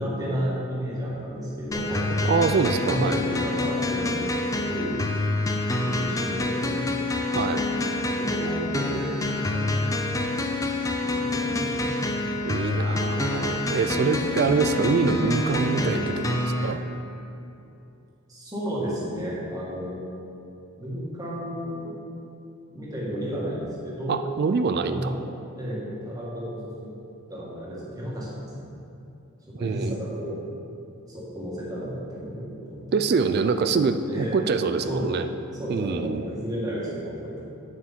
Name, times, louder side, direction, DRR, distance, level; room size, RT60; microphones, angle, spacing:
voice 1, 0.0-2.1 2.6-5.0 5.8-6.9 8.1-9.9 10.6-12.5 13.8-14.6 15.7-15.9 18.3-20.0 20.8-22.0 22.7-24.2 24.9-25.2 25.6-26.9 27.3-28.7 29.6-30.4 31.1-32.9 33.5-33.7 34.1-34.4 34.8-35.2 35.5-37.5, equal, 15° right, -7 dB, 1.9 m, -33 dB
sound 1, 1.7-16.7, left 2 dB, 15° left, 0.5 m, -27 dB
voice 2, 2.3-3.2 7.3-7.6 12.4-16.8 24.1-25.1 29.5-30.0 32.9-35.3 35.7-36.2, right 5 dB, 50° right, 9 dB, 0.3 m, -25 dB
8.6 x 7.4 x 4.3 m, 2.7 s
head